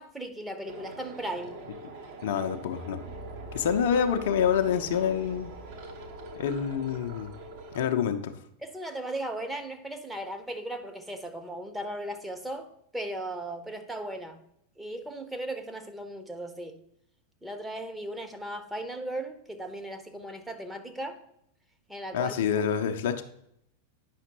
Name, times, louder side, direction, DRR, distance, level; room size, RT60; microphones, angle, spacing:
voice 1, 0.0-1.6 8.6-14.4 14.8-16.8 17.4-21.2 21.9-22.3, right 1 dB, 5° right, 5 dB, 0.8 m, -37 dB
sound 1, 0.7-7.9, right 2 dB, 50° right, 1.3 m, -43 dB
voice 2, 2.2-3.0 3.5-5.5 6.4-7.3 7.7-8.4 22.1-23.2, left 8 dB, 55° left, 6 dB, 0.6 m, -27 dB
9.2 x 5.7 x 2.9 m, 0.75 s
figure-of-eight pair, 90°, 0 cm